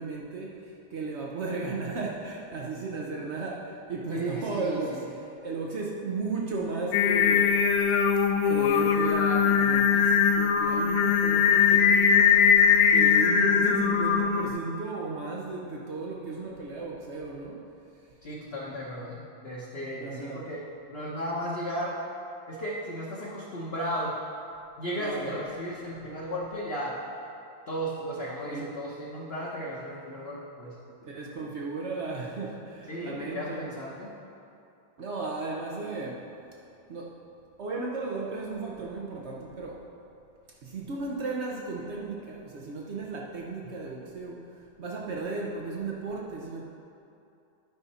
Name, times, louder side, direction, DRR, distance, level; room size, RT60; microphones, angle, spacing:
voice 1, 0.0-5.0 5.4-7.6 8.4-12.6 12.9-17.6 20.0-20.4 25.0-25.4 28.5-28.7 31.0-33.7 35.0-36.3 36.9-37.2 37.6-39.8 40.6-44.4 44.8-46.6, right 3 dB, 90° right, -2 dB, 0.6 m, -35 dB
voice 2, 4.1-4.8 18.2-20.6 20.9-22.0 22.5-24.1 24.8-27.0 27.7-30.7 32.9-34.1, equal, 45° left, -6 dB, 0.8 m, -35 dB
Singing, 6.9-14.5, left 7 dB, 85° left, 1.4 m, -21 dB
12.0 x 5.6 x 4.1 m, 2.7 s
omnidirectional pair, 2.2 m